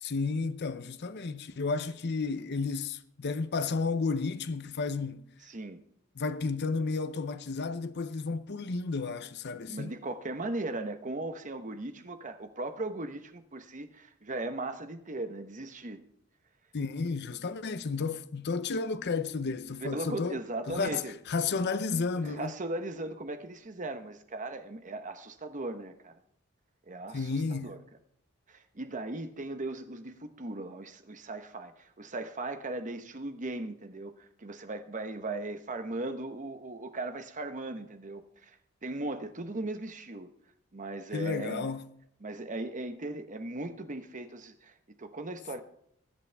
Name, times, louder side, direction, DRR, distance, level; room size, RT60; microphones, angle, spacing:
voice 1, 0.0-5.2 6.2-9.9 16.7-20.4 20.7-22.5 27.1-27.7 41.1-41.9, left 4 dB, 50° left, 0.6 m, -32 dB
voice 2, 5.4-5.8 9.7-16.0 19.8-21.2 22.1-26.2 26.9-27.8 28.5-38.6 38.8-40.3 40.7-41.7 42.2-45.6, right 2 dB, 35° right, 1.0 m, -38 dB
20.5 x 8.4 x 3.5 m
head